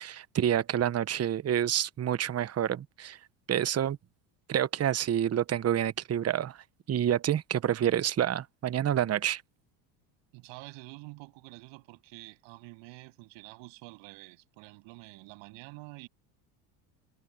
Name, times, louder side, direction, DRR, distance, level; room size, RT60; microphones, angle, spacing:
voice 1, 0.0-3.2 3.5-4.0 4.5-9.4, right 10 dB, 30° right, 1.1 m, -28 dB
voice 2, 10.3-16.1, right 26 dB, 70° right, 7.8 m, -48 dB
hypercardioid pair, 80°, 46 cm